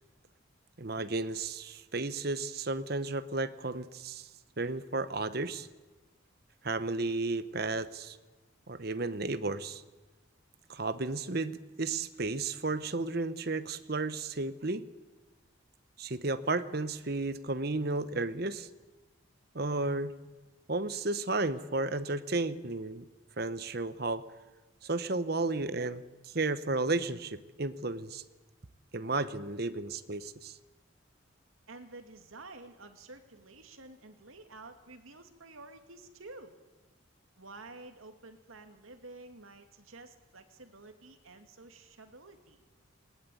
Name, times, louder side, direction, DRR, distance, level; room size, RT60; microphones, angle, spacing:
voice 1, 0.8-4.3 4.6-5.7 6.6-8.2 8.7-9.8 10.7-14.9 16.0-18.7 19.5-20.1 20.7-23.1 23.4-24.2 24.8-28.2 28.9-30.6, right 3 dB, 50° right, 13 dB, 1.0 m, -33 dB
voice 2, 31.7-36.6 37.4-42.6, right 2 dB, 85° right, 6 dB, 2.4 m, -50 dB
20.0 x 19.5 x 9.3 m, 1.2 s
head